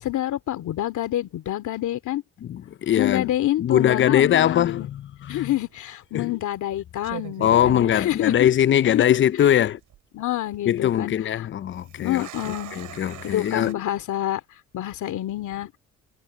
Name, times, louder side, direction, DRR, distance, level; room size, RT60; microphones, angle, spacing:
voice 1, 0.0-2.2 3.0-4.9 5.3-8.5 8.9-9.0 9.4-9.5 10.1-11.1 12.0-12.8 13.2-14.4 14.7-15.8, left 14 dB, 75° left, 2.5 m, -27 dB
voice 2, 2.4-3.3 3.6-5.5 6.1-6.3 7.4-9.8 10.7-12.3 12.7-13.8, left 10 dB, 40° left, 0.5 m, -21 dB
sound 1, 5.5-5.8 6.5-6.7 7.0-8.6 8.9-9.0 9.6-10.0 11.7-13.7, right 13 dB, 85° right, 6.6 m, -41 dB
cardioid pair, 90°, 30 cm